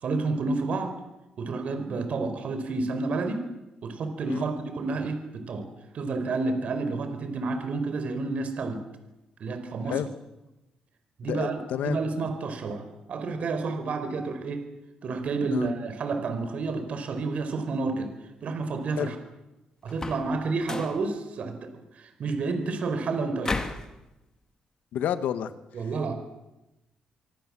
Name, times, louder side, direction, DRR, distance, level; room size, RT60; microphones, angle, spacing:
voice 1, 0.0-1.0 1.4-3.5 3.8-5.7 5.9-8.8 9.4-10.1 11.2-14.7 15.0-18.1 18.4-19.2 19.8-23.7 25.7-26.1, right 3 dB, 55° right, 8 dB, 4.5 m, -30 dB
voice 2, 11.3-12.0 15.5-15.7 19.0-19.1 24.9-25.5, left 10 dB, 85° left, 11 dB, 1.5 m, -29 dB
sound 1, 19.9-20.3 20.6-21.0 23.4-23.9, left 3 dB, 25° left, 2.4 m, -32 dB
25.5 x 23.5 x 7.7 m, 0.97 s
cardioid pair, 130°, 3 cm